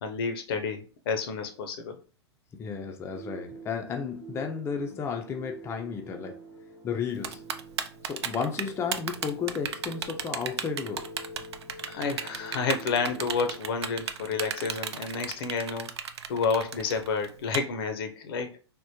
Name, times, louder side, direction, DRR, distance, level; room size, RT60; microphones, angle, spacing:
voice 1, 0.0-2.0 11.8-15.9 16.3-18.5, left 5 dB, 60° left, 0.6 m, -30 dB
voice 2, 2.5-6.4 6.8-7.4 8.0-11.1, left 6 dB, 15° left, 0.4 m, -33 dB
sound 1, 3.1-13.6, right 1 dB, 90° left, 1.0 m, -47 dB
Typing, 7.2-17.6, right 8 dB, 70° right, 0.4 m, -33 dB
3.5 x 2.1 x 2.8 m
figure-of-eight pair, 100°, 14 cm